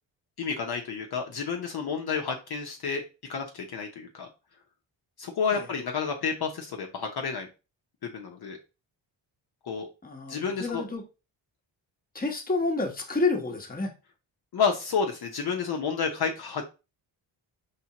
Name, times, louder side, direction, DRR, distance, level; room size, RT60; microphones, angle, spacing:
voice 1, 0.4-3.0 3.3-4.3 5.2-7.5 8.0-8.6 9.6-9.9 10.3-10.8 14.5-16.7, left 5 dB, 55° left, 2 dB, 0.8 m, -30 dB
voice 2, 10.0-11.0 12.1-13.9, left 3 dB, 20° left, 2 dB, 1.0 m, -29 dB
4.4 x 3.4 x 2.9 m, 0.30 s
cardioid pair, 85°, 47 cm